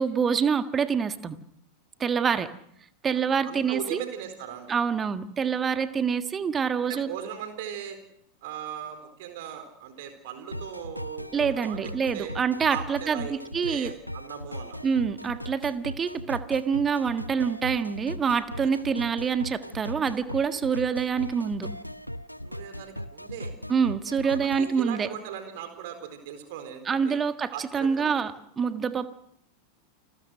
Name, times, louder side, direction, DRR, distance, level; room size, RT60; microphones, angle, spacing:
voice 1, 0.0-1.4 2.0-2.5 3.0-4.0 4.7-7.1 11.3-13.9 14.8-21.7 23.7-25.1 26.9-29.1, right 6 dB, 20° right, 11 dB, 1.5 m, -26 dB
voice 2, 3.1-4.7 6.8-8.0 8.4-12.3 12.7-13.4 13.7-14.8 18.6-18.7 22.4-23.5 24.2-27.2 27.5-28.2, right 9 dB, 50° right, 8 dB, 4.3 m, -39 dB
sound 1, 10.5-24.7, equal, 90° left, 1.0 m, -38 dB
29.5 x 21.0 x 6.5 m, 0.73 s
figure-of-eight pair, 90°, 0 cm